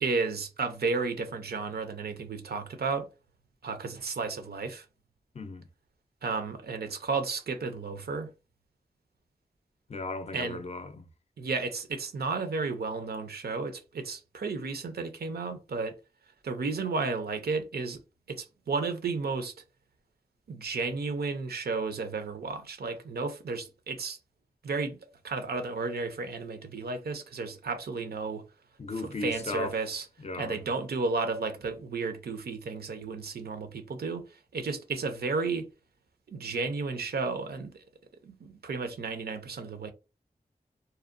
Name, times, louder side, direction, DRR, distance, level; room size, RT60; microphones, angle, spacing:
voice 1, 0.0-3.1 3.6-4.9 6.2-8.3 10.3-10.6 11.4-16.0 16.4-18.0 18.3-19.5 20.5-24.2 24.6-25.0 25.2-28.4 29.0-30.1 30.4-34.3 34.5-35.7 36.3-37.8 38.2-39.9, right 4 dB, 80° right, 0.5 m, -33 dB
voice 2, 5.3-5.7 9.9-11.1 28.8-29.8 30.2-30.6, left 3 dB, 45° left, 0.4 m, -36 dB
2.7 x 2.0 x 2.5 m
cardioid pair, 45°, 16 cm